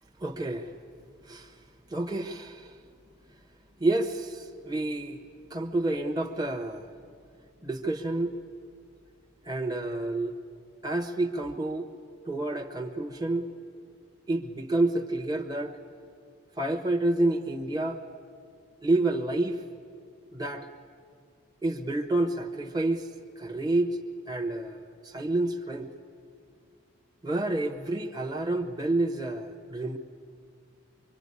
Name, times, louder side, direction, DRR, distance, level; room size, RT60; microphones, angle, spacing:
voice 1, 0.2-0.7 1.3-1.5 1.9-2.8 3.8-5.2 5.5-6.9 7.6-8.3 9.4-10.4 10.8-11.9 12.3-13.5 14.3-15.8 16.6-18.0 18.8-19.6 20.3-20.7 21.6-23.1 23.4-24.0 24.3-25.9 27.2-30.0, right 2 dB, 20° right, 3 dB, 1.1 m, -29 dB
25.0 x 24.0 x 9.7 m, 2.2 s
head